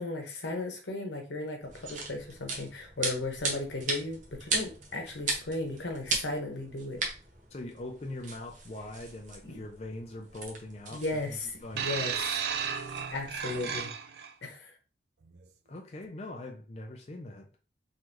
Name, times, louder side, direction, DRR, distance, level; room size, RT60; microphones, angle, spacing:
voice 1, 0.0-7.0 9.5-9.6 10.9-12.5 13.1-13.9 14.4-14.7, left 2 dB, 85° left, 1.1 m, -36 dB
sound 1, 1.6-13.8, right 3 dB, 45° right, 0.9 m, -38 dB
voice 2, 7.5-11.9 15.7-17.5, left 1 dB, 35° left, 0.5 m, -42 dB
sound 2, 11.8-14.3 15.2-15.4, right 7 dB, 65° right, 0.4 m, -34 dB
3.9 x 3.1 x 3.0 m
head